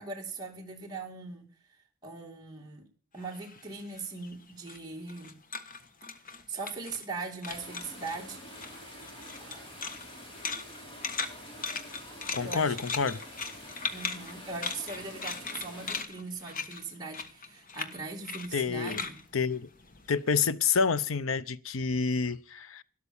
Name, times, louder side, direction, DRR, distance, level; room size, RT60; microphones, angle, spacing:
voice 1, 0.0-1.5 2.0-2.9 3.1-5.4 6.5-8.4 9.4-9.8 12.4-12.8 13.9-19.2, right 3 dB, 20° right, 2.5 m, -40 dB
sound 1, 3.2-7.2 7.4-8.2 8.5-20.4, left 4 dB, 40° left, 1.4 m, -39 dB
sound 2, 7.4-16.0, equal, 25° left, 4.5 m, -47 dB
voice 2, 12.3-13.2 18.5-19.0 19.3-19.7 20.1-22.8, left 5 dB, 75° left, 0.7 m, -28 dB
12.5 x 12.0 x 7.1 m
head